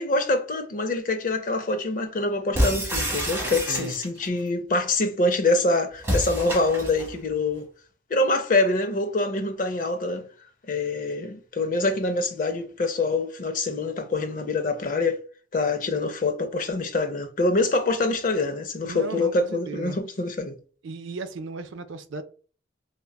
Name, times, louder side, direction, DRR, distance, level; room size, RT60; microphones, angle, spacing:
voice 1, 0.0-7.7 8.1-10.3 10.7-15.2 15.5-20.5, left 2 dB, 45° left, 0.5 m, -25 dB
sound 1, 2.5-4.3 6.0-7.1, equal, 15° right, 1.0 m, -27 dB
voice 2, 18.8-20.0 20.8-22.2, right 3 dB, 85° right, 0.4 m, -35 dB
3.7 x 2.1 x 2.2 m
head